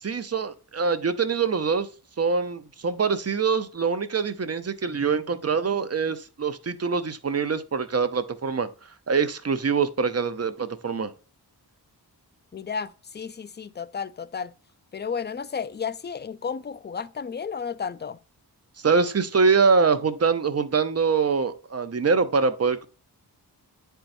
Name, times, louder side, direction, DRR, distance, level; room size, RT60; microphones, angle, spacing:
voice 1, 0.0-1.9 2.2-8.7 9.1-11.1 18.8-22.9, right 5 dB, 40° right, 0.7 m, -24 dB
voice 2, 12.5-14.5 14.9-18.2, left 6 dB, 30° left, 0.4 m, -33 dB
9.7 x 4.6 x 2.6 m
wide cardioid pair, 95°, 39 cm